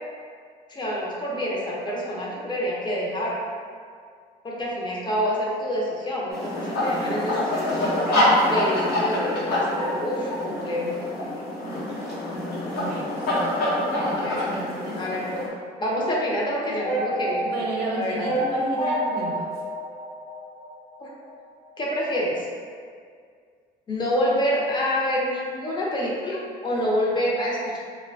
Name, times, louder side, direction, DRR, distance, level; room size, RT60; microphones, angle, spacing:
voice 1, 0.7-3.4 4.4-10.9 14.2-14.5 15.0-15.5 15.8-17.5 17.9-18.3 21.0-21.1 21.8-22.5 23.9-27.8, equal, 25° left, -5 dB, 0.5 m, -27 dB
sound 1, 6.3-15.5, left 1 dB, 70° left, 0.8 m, -26 dB
voice 2, 12.7-13.6 13.9-15.2 17.4-19.6, right 2 dB, 70° right, -3 dB, 0.6 m, -33 dB
sound 2, 16.8-21.0, right 1 dB, 90° left, 1.1 m, -29 dB
2.3 x 2.1 x 2.5 m, 2.1 s
cardioid pair, 110°, 17 cm